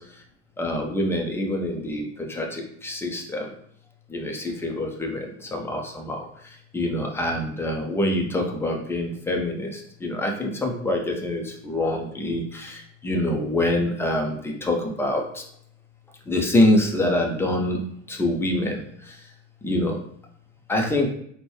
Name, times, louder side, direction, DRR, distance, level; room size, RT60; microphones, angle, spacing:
voice 1, 0.6-3.5 4.1-15.4 16.3-17.8 18.1-19.2 19.6-20.0 20.7-21.1, left 1 dB, 5° left, 1 dB, 0.6 m, -25 dB
4.2 x 2.2 x 3.1 m, 0.67 s
hypercardioid pair, 75°, 39 cm